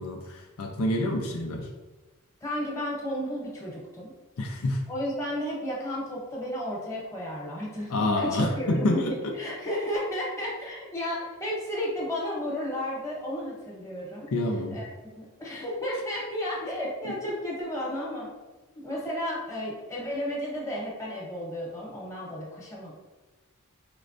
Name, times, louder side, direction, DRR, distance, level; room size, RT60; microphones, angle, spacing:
voice 1, 0.0-1.7 4.4-4.8 7.9-9.3 14.3-14.8, left 1 dB, 75° left, 2 dB, 0.5 m, -27 dB
voice 2, 2.4-4.1 4.9-14.3 14.7-18.3 18.7-23.0, equal, 15° left, -4 dB, 1.0 m, -33 dB
4.5 x 3.2 x 2.6 m, 1.2 s
head